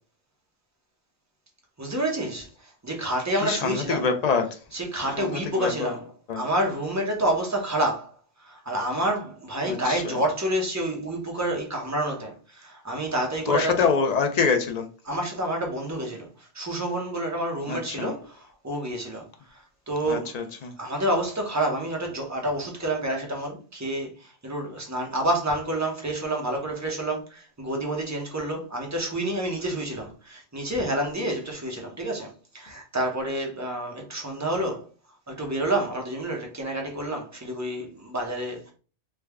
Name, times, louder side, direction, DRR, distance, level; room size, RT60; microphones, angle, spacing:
voice 1, 1.8-2.5 2.8-4.1 4.7-6.0 6.4-8.1 8.4-13.7 15.1-16.3 16.5-19.2 19.5-20.3 20.8-34.8 35.3-38.7, right 1 dB, 20° right, 0.7 m, -28 dB
voice 2, 3.3-4.6 5.0-6.0 6.3-6.5 9.6-10.2 13.5-14.9 17.7-18.1 20.1-20.7, left 5 dB, 60° left, 0.4 m, -26 dB
3.4 x 2.2 x 3.3 m
omnidirectional pair, 1.1 m